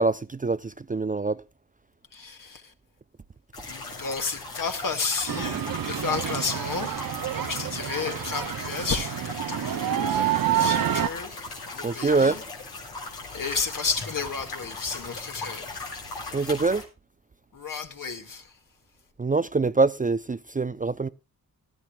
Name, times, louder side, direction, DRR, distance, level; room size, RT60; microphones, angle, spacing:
voice 1, 0.0-1.4 11.8-12.4 16.3-16.8 19.2-21.1, right 3 dB, 20° right, 0.5 m, -24 dB
voice 2, 2.1-2.7 3.7-7.0 7.4-12.4 13.3-15.8 17.5-18.5, left 5 dB, 60° left, 2.1 m, -32 dB
sound 1, 3.5-16.8, left 3 dB, 90° left, 3.7 m, -38 dB
sound 2, 5.3-11.1, right 10 dB, 65° right, 0.8 m, -28 dB
18.5 x 11.5 x 2.3 m
cardioid pair, 45°, 37 cm